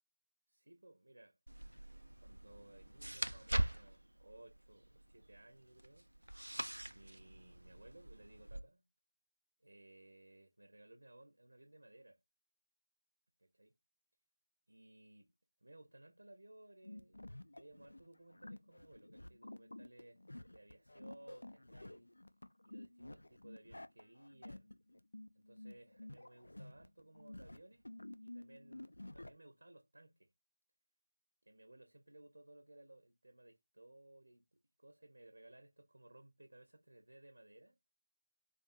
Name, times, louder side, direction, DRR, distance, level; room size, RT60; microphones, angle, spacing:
voice 1, 0.5-1.4 2.2-6.1 6.9-8.9 9.6-12.2 13.4-13.7 14.7-15.3 15.6-22.1 22.6-24.7 25.3-27.9 28.2-30.3 31.4-37.8, right 1 dB, 60° right, 0.8 m, -60 dB
sound 1, 1.5-8.6, right 1 dB, 75° right, 0.4 m, -43 dB
sound 2, 16.8-29.3, left 1 dB, 60° left, 0.4 m, -52 dB
3.6 x 2.6 x 2.5 m
figure-of-eight pair, 165°, 0 cm